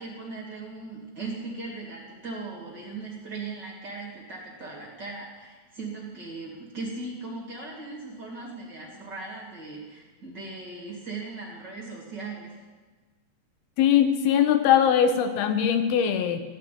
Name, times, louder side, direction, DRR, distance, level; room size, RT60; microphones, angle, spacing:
voice 1, 0.0-12.5, right 3 dB, 30° right, -3 dB, 2.5 m, -38 dB
voice 2, 13.8-16.4, left 9 dB, 85° left, 8 dB, 2.8 m, -21 dB
15.0 x 6.1 x 9.3 m, 1.3 s
omnidirectional pair, 4.3 m